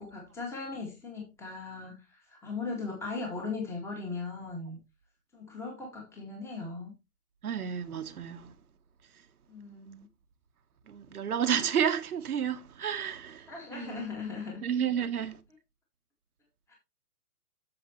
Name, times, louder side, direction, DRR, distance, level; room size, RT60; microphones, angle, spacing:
voice 1, 0.0-4.8 5.3-6.9 9.5-10.1 13.5-14.6 16.7-16.8, left 4 dB, 5° left, 2.0 m, -38 dB
voice 2, 7.4-8.5 9.9-10.0 10.9-14.1 14.6-15.4, right 8 dB, 70° right, 1.4 m, -31 dB
9.0 x 7.1 x 3.0 m
hypercardioid pair, 160°, 46 cm